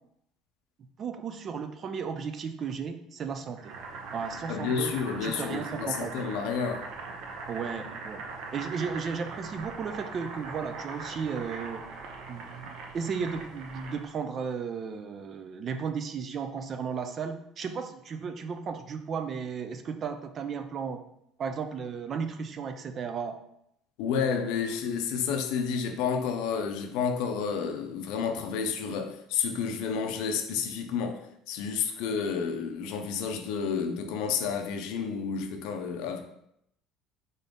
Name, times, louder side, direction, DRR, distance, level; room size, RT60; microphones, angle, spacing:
voice 1, 1.0-3.7 4.1-4.9 5.2-6.2 7.5-8.2 8.5-11.8 12.3-21.0 21.4-23.4, right 6 dB, 30° right, 0.4 m, -34 dB
Boiling, 3.6-14.2, right 4 dB, 60° right, 0.7 m, -41 dB
voice 2, 4.5-6.9 24.0-36.2, left 6 dB, 75° left, 0.6 m, -30 dB
3.9 x 3.8 x 3.6 m
cardioid pair, 160°, 0 cm